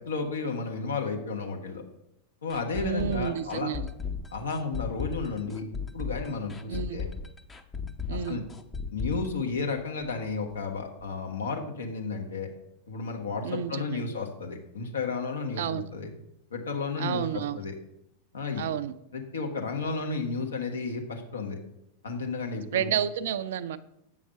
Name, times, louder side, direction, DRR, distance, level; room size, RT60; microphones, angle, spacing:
voice 1, 0.0-1.8 2.4-3.7 4.3-5.6 5.9-7.0 8.1-8.4 8.9-12.5 12.9-16.1 16.5-17.7 18.3-18.6 19.1-21.6 22.0-23.0, left 4 dB, 70° left, 3 dB, 1.4 m, -32 dB
sound 1, 2.5-10.2 10.5-10.6 11.0-11.1, left 6 dB, 15° left, 0.7 m, -36 dB
voice 2, 2.8-3.9 6.7-7.0 8.1-8.4 13.4-14.1 15.6-15.8 17.0-17.6 18.6-18.9 22.7-23.8, right 9 dB, 55° right, 13 dB, 0.4 m, -30 dB
7.8 x 5.7 x 5.4 m, 0.80 s
figure-of-eight pair, 90°, 0 cm